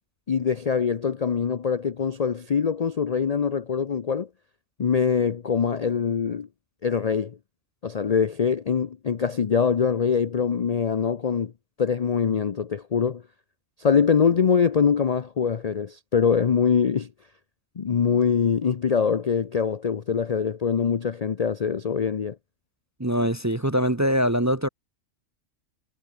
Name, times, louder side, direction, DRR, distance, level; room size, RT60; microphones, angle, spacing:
voice 1, 0.3-4.3 4.8-6.5 6.8-7.4 7.8-11.5 11.8-13.2 13.8-17.1 17.8-22.4, left 6 dB, 45° left, 0.5 m, -23 dB
voice 2, 23.0-24.7, equal, 15° right, 0.7 m, -23 dB
omnidirectional pair, 1.4 m